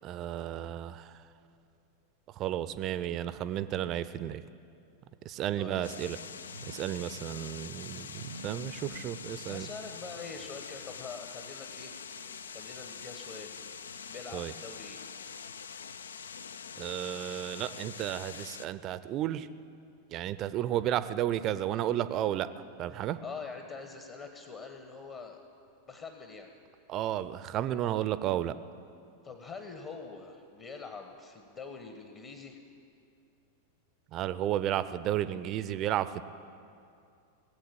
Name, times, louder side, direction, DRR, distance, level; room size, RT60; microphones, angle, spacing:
voice 1, 0.0-1.2 2.3-4.4 5.2-6.2 6.6-9.7 14.3-14.5 16.8-19.5 20.1-22.5 22.8-23.2 26.9-28.5 34.1-36.2, right 12 dB, 35° right, 14 dB, 0.5 m, -32 dB
voice 2, 5.6-5.9 9.5-13.7 14.1-15.0 22.9-25.4 25.9-26.5 29.2-32.6, left 4 dB, 30° left, 5 dB, 1.2 m, -44 dB
sound 1, 5.8-18.7, left 6 dB, 70° left, 0.4 m, -44 dB
sound 2, 6.3-11.2 11.9-12.0 12.3-14.1, right 2 dB, 85° right, 0.9 m, -51 dB
18.5 x 7.9 x 8.6 m, 2.5 s
figure-of-eight pair, 90°, 0 cm